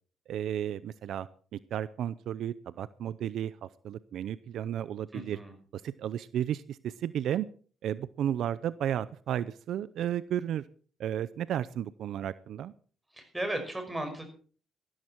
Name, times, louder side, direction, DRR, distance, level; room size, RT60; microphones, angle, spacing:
voice 1, 0.3-5.4 5.7-7.5 7.8-10.6 11.0-12.7, right 10 dB, 75° right, 17 dB, 0.5 m, -33 dB
voice 2, 5.1-5.5 13.1-14.3, right 1 dB, 10° right, 6 dB, 5.6 m, -35 dB
14.5 x 13.0 x 4.5 m, 0.42 s
cardioid pair, 90°, 0 cm